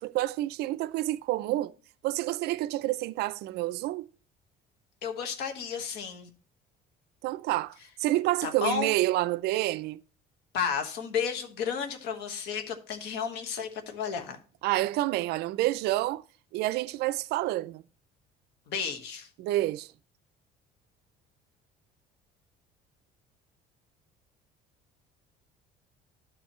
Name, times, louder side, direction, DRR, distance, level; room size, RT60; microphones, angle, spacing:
voice 1, 0.0-1.7 2.0-4.1 7.2-10.0 14.6-16.2 16.5-17.8 19.4-19.9, right 16 dB, 70° right, 0.4 m, -28 dB
voice 2, 5.0-6.3 8.4-8.9 10.5-14.4 18.7-19.3, left 7 dB, 75° left, 1.4 m, -32 dB
12.0 x 4.6 x 3.0 m
cardioid pair, 140°, 18 cm